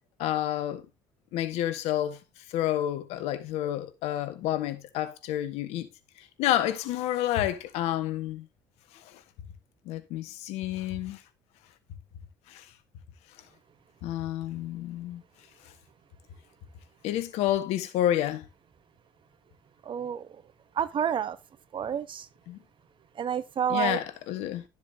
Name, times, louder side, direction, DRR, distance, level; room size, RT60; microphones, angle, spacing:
voice 1, 0.2-0.8 1.3-2.2 2.5-5.9 6.2-8.4 9.0-9.1 9.8-11.2 12.5-12.6 14.0-15.2 17.0-18.4 22.5-22.6 23.7-24.6, left 12 dB, 75° left, 1.5 m, -29 dB
voice 2, 19.8-20.4 20.7-21.4 21.7-22.3 23.2-24.0, right 8 dB, 50° right, 1.1 m, -29 dB
12.5 x 7.2 x 2.8 m
hypercardioid pair, 65°, 11 cm